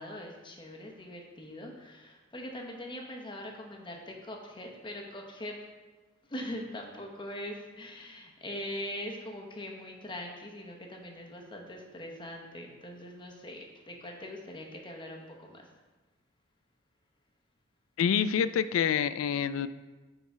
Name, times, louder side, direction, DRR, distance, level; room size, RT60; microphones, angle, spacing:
voice 1, 0.0-5.6 6.2-15.7, left 1 dB, 25° left, 1 dB, 1.0 m, -42 dB
voice 2, 18.0-19.7, left 8 dB, 85° left, 14 dB, 0.3 m, -27 dB
7.9 x 3.9 x 4.8 m, 1.2 s
head